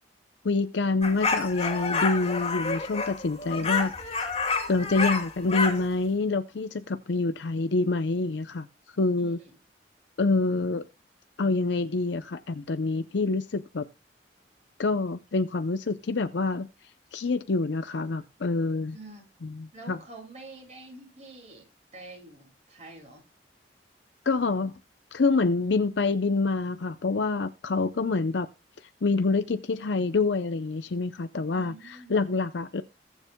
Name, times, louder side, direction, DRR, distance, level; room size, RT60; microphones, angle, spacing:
voice 1, 0.4-3.9 4.7-9.4 10.2-10.8 11.4-13.8 14.8-16.7 17.1-19.0 19.4-20.0 24.3-24.8 25.1-28.5 28.8-32.8, left 3 dB, 85° left, 0.6 m, -26 dB
sound 1, 1.0-5.8, left 4 dB, 35° left, 2.8 m, -29 dB
voice 2, 9.2-9.5 18.9-19.3 19.7-21.7 21.9-23.2 31.5-32.2, right 2 dB, 40° right, 7.3 m, -46 dB
21.5 x 7.2 x 2.2 m
head